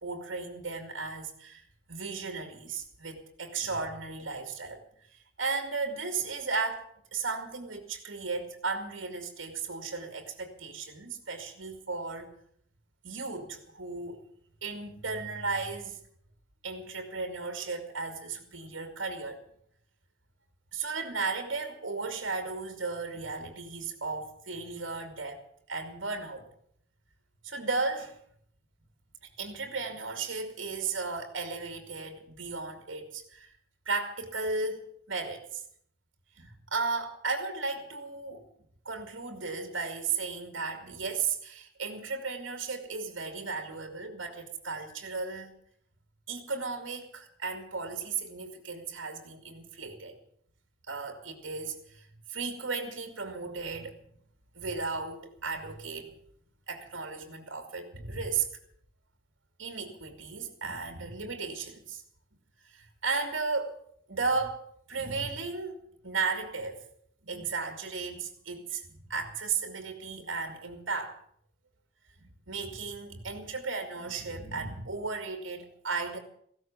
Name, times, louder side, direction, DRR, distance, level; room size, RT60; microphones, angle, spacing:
voice 1, 0.0-4.8 5.4-12.3 13.0-14.2 14.6-16.0 16.6-19.4 20.7-26.5 27.4-28.2 29.4-33.5 33.9-35.6 36.4-38.5 38.8-45.6 46.3-50.2 50.9-54.0 54.5-56.2 56.7-58.5 59.6-62.0 62.6-63.8 64.1-66.8 67.2-71.2 72.2-76.2, right 4 dB, 70° right, 6 dB, 2.4 m, -35 dB
15.5 x 12.5 x 7.2 m, 0.64 s
head